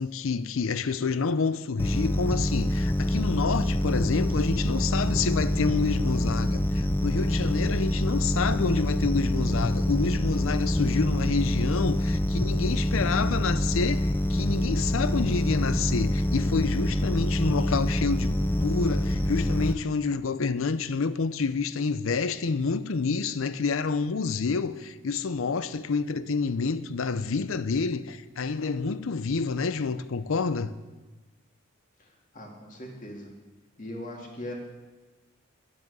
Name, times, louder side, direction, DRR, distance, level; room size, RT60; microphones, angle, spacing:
voice 1, 0.0-30.7, left 4 dB, 70° left, 0.5 m, -28 dB
sound 1, 1.8-19.7, left 1 dB, 10° left, 0.4 m, -26 dB
voice 2, 32.3-33.3 33.8-34.5, left 1 dB, 40° left, 2.1 m, -39 dB
9.8 x 7.6 x 8.0 m
head